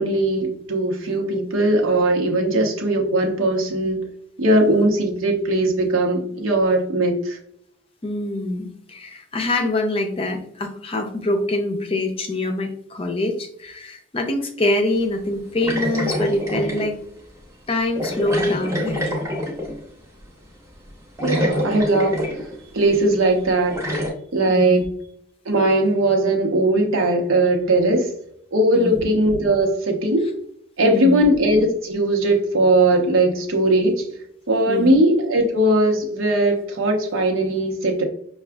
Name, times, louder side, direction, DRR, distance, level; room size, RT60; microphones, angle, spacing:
voice 1, 0.0-4.0 4.4-7.4 21.2-22.2 22.7-23.8 24.3-24.8 25.5-28.1 28.5-30.3 30.8-34.0 34.5-38.0, right 1 dB, 85° right, 2 dB, 0.9 m, -19 dB
voice 2, 8.0-17.0 17.7-19.1 24.5-24.9 28.7-29.0 30.8-31.3 34.7-35.0, left 2 dB, 30° left, 4 dB, 0.5 m, -24 dB
sound 1, 15.6-16.9 18.0-19.8 20.9-21.0 21.2-22.6 22.9-23.0 23.7-24.1, equal, 15° right, 0.8 m, -26 dB
5.8 x 2.3 x 2.3 m, 0.71 s
head